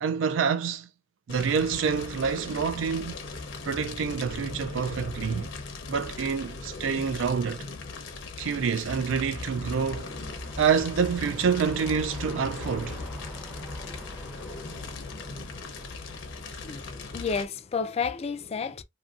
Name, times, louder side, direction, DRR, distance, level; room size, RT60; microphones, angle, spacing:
voice 1, 0.0-0.9 1.3-3.2 3.7-5.5 5.9-7.7 8.4-10.1 10.6-13.0, right 6 dB, 85° right, 0.4 m, -27 dB
Fire, 1.3-17.5, left 3 dB, 75° left, 0.6 m, -39 dB
sound 1, 8.8-17.4, left 1 dB, ahead, 0.6 m, -43 dB
voice 2, 16.5-18.8, left 5 dB, 35° left, 0.3 m, -31 dB
2.6 x 2.6 x 2.3 m
head